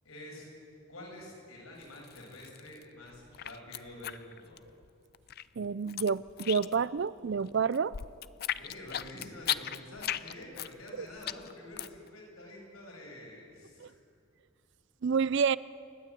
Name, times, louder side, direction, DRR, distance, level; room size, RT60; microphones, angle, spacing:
voice 1, 0.0-0.5 0.9-4.6 8.5-14.0, left 1 dB, 80° left, -2 dB, 7.4 m, -48 dB
sound 1, 1.8-2.8 3.1-4.9 5.1-7.0 7.3-12.1, left 11 dB, 45° left, 0.4 m, -36 dB
voice 2, 5.6-7.9 11.0-11.1 13.8-13.9 15.0-15.6, right 6 dB, 55° right, 18 dB, 0.4 m, -29 dB
29.5 x 12.0 x 8.4 m, 2.5 s
head